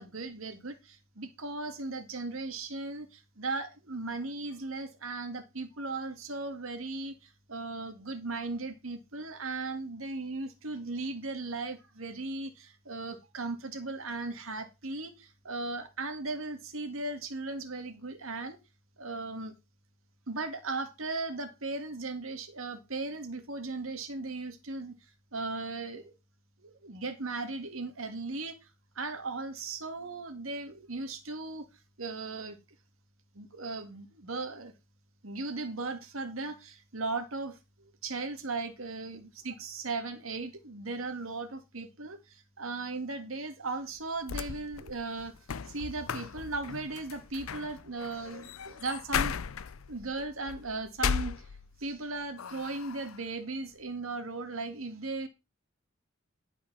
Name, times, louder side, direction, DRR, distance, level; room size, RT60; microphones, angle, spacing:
voice 1, 0.0-18.6 19.0-19.6 20.3-25.0 25.3-26.1 26.6-28.6 29.0-31.7 32.0-32.6 33.3-34.7 35.2-45.3 45.7-49.3 49.9-51.4 51.8-55.3, right 3 dB, 75° right, 1.9 m, -37 dB
sound 1, 44.0-52.0 52.4-53.2, left 7 dB, 80° left, 0.6 m, -36 dB
11.0 x 5.1 x 6.1 m
head